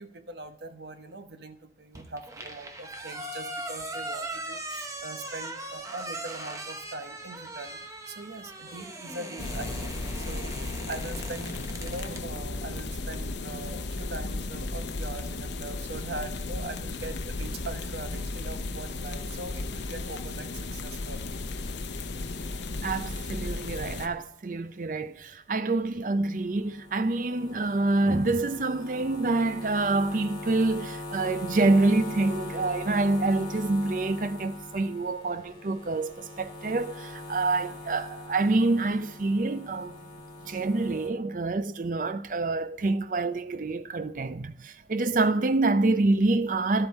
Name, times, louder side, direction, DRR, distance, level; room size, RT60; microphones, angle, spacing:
voice 1, 0.0-7.8 8.1-21.4 22.3-22.4, right 2 dB, 75° right, 0.9 m, -41 dB
sound 1, 1.9-12.2, right 1 dB, 20° right, 0.8 m, -39 dB
sound 2, 9.4-24.1, left 2 dB, 85° left, 0.8 m, -35 dB
voice 2, 22.8-40.0 40.4-46.9, right 2 dB, 45° right, 0.5 m, -26 dB
sound 3, 26.2-41.1, left 2 dB, 25° left, 2.0 m, -41 dB
11.0 x 7.9 x 4.2 m
head